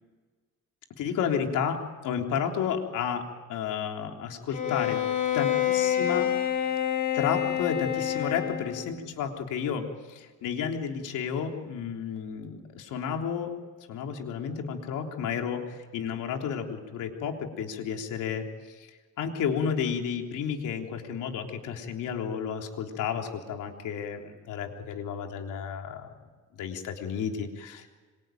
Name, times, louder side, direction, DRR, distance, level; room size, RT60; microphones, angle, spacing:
voice 1, 1.0-1.8 2.0-5.0 5.3-6.3 7.1-13.5 13.9-18.4 19.2-26.1 26.6-27.9, left 7 dB, 90° left, 3 dB, 3.6 m, -32 dB
Bowed string instrument, 4.5-8.9, left 10 dB, 65° left, 2.7 m, -27 dB
26.5 x 24.0 x 9.2 m, 1.4 s
cardioid pair, 90°, 30 cm